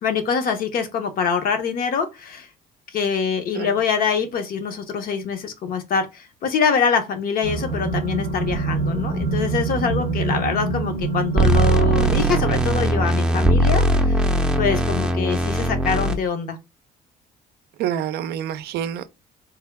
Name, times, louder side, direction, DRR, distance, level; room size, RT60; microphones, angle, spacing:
voice 1, 0.0-2.5 2.9-14.2 14.6-16.6, left 6 dB, 60° left, 0.8 m, -24 dB
sound 1, 7.4-13.1, right 4 dB, 85° left, 1.6 m, -26 dB
sound 2, 11.4-16.1, right 1 dB, 5° right, 0.5 m, -19 dB
voice 2, 17.8-19.1, right 10 dB, 70° right, 0.4 m, -27 dB
3.4 x 2.2 x 3.3 m
cardioid pair, 110°, 17 cm